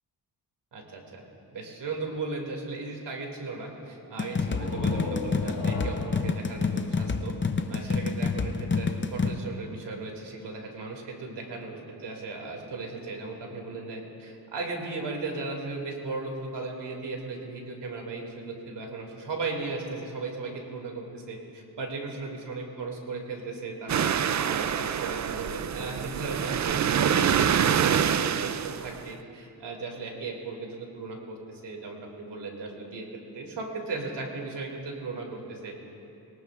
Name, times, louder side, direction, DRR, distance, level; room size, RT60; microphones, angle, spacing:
voice 1, 0.7-1.2 1.5-7.3 7.7-33.1 33.3-35.8, right 3 dB, 80° right, 0 dB, 2.5 m, -36 dB
sound 1, 4.2-9.3, left 4 dB, 30° left, 0.6 m, -28 dB
sound 2, 4.4-8.0, left 3 dB, 85° left, 3.7 m, -37 dB
sound 3, 23.9-29.1, right 8 dB, 45° right, 0.4 m, -26 dB
22.5 x 18.5 x 2.5 m, 2.8 s
wide cardioid pair, 125°, 41 cm